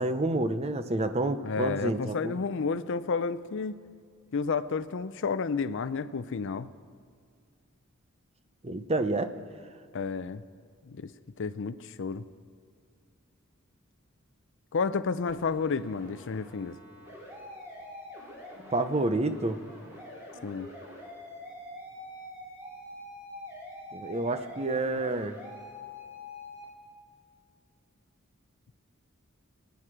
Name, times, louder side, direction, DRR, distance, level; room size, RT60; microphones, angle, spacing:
voice 1, 0.0-2.4 8.6-9.3 18.7-19.6 23.9-25.4, right 2 dB, 30° right, 10 dB, 0.7 m, -29 dB
voice 2, 1.4-3.7 4.3-6.7 9.9-10.4 10.8-11.1 11.4-12.2 14.7-16.8 20.4-20.7, left 5 dB, 60° left, 14 dB, 0.5 m, -31 dB
sound 1, 15.3-26.6, left 1 dB, 10° right, 3.7 m, -45 dB
24.0 x 9.4 x 4.9 m, 2.2 s
head